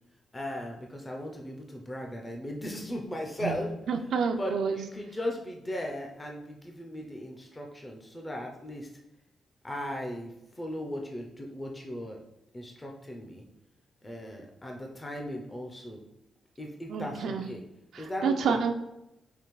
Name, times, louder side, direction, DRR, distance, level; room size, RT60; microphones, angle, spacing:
voice 1, 0.3-3.7 4.4-8.9 9.6-12.2 12.5-13.4 14.0-16.0 16.6-17.6 18.0-18.6, left 1 dB, 15° left, 1 dB, 0.4 m, -37 dB
voice 2, 3.9-4.8 16.9-17.4 17.9-18.7, right 6 dB, 75° right, 4 dB, 0.3 m, -29 dB
5.1 x 2.5 x 3.0 m, 0.89 s
wide cardioid pair, 150°, 0 cm